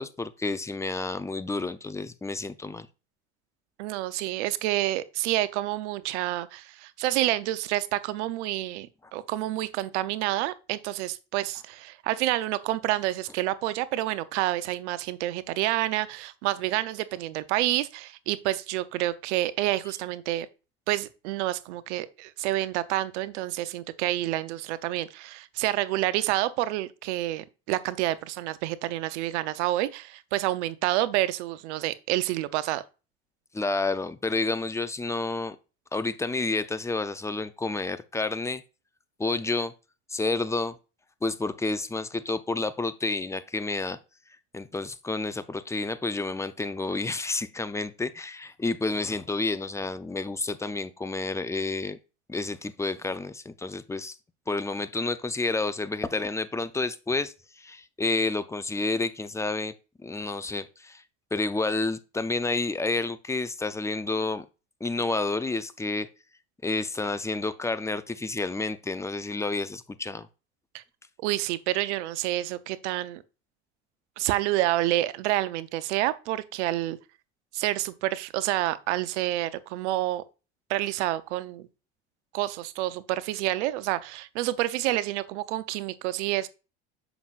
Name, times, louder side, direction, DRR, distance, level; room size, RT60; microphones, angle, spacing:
voice 1, 0.0-2.9 33.5-35.6 35.9-38.6 39.2-39.7 40.1-40.8 41.2-44.0 44.5-52.0 52.3-54.2 54.5-59.7 60.0-61.0 61.3-64.4 64.8-66.1 66.6-70.3, left 3 dB, 10° left, 0.5 m, -30 dB
voice 2, 3.8-20.5 20.9-32.8 70.7-70.8 71.2-73.2 74.2-77.0 77.5-80.2 80.7-81.7 82.3-86.5, right 15 dB, 80° right, 0.7 m, -28 dB
7.1 x 6.0 x 2.4 m
supercardioid pair, 100°, 34 cm